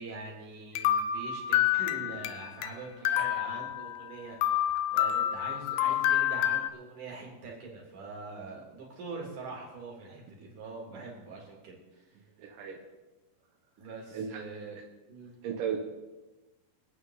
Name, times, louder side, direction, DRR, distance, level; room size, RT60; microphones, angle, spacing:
voice 1, 0.0-4.5 4.9-12.2 13.8-14.8 15.1-15.4, right 3 dB, 50° right, -1 dB, 4.1 m, -43 dB
sound 1, 0.8-2.7 3.1-4.1 4.4-6.7, left 11 dB, 85° left, 2.2 m, -28 dB
voice 2, 3.0-3.4 4.8-4.9 10.9-11.0 12.4-12.9 14.1-14.4 15.4-15.8, right 8 dB, 70° right, 0 dB, 2.2 m, -36 dB
24.5 x 8.7 x 4.0 m, 1.1 s
omnidirectional pair, 5.1 m